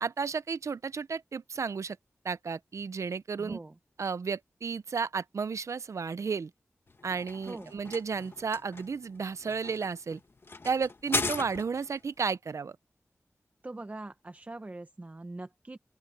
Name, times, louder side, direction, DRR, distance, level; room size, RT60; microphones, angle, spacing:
voice 1, 0.0-2.0 2.2-3.6 4.0-6.5 7.0-10.2 10.6-12.8, right 5 dB, 70° right, 0.5 m, -33 dB
voice 2, 3.4-3.7 7.5-7.7 13.6-15.8, right 2 dB, 30° right, 0.9 m, -42 dB
sound 1, 6.9-12.0, left 3 dB, 45° left, 1.3 m, -37 dB
open air
wide cardioid pair, 85°, 5 cm